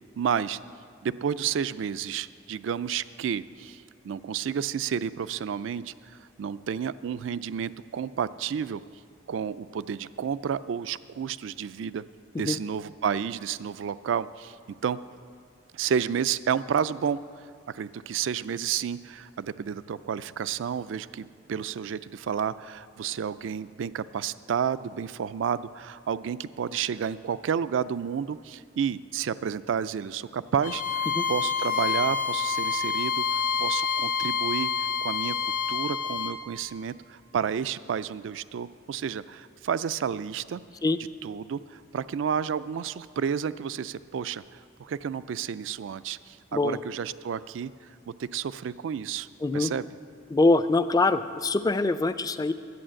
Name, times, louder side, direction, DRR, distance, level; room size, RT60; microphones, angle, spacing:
voice 1, 0.2-0.6 1.0-5.9 6.4-8.8 9.3-12.0 12.4-14.6 14.8-15.0 15.7-17.2 17.7-34.7 35.0-35.4 35.7-40.6 41.2-47.7 48.1-49.3 49.5-49.9, right 7 dB, 80° right, 16 dB, 0.4 m, -31 dB
Bowed string instrument, 30.6-36.4, left 6 dB, 45° left, 0.8 m, -27 dB
voice 2, 49.4-49.7 50.3-52.5, left 3 dB, 20° left, 12 dB, 0.4 m, -24 dB
11.5 x 8.6 x 7.6 m, 2.2 s
head